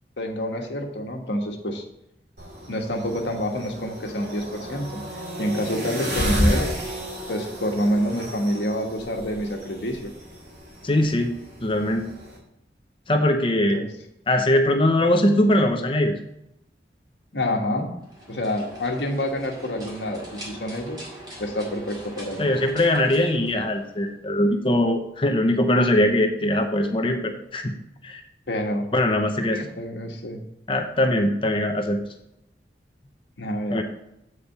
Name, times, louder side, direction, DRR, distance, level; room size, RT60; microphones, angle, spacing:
voice 1, 0.2-1.8 2.7-5.0 5.4-6.8 7.3-10.1 13.7-13.9 17.3-17.9 18.3-21.0 21.4-22.5 28.5-28.9 29.5-30.4 33.4-33.8, equal, 80° left, 3 dB, 1.4 m, -27 dB
sound 1, 2.4-12.4, equal, 60° right, 2.6 m, -31 dB
voice 2, 10.8-11.3 11.6-12.0 13.1-13.8 14.3-16.1 22.4-27.7 28.0-28.2 28.9-29.6 30.7-32.0 33.7-33.8, left 1 dB, 30° left, 4 dB, 0.8 m, -21 dB
sound 2, 18.0-24.2, equal, 25° right, 2.1 m, -42 dB
8.4 x 5.1 x 5.7 m, 0.82 s
head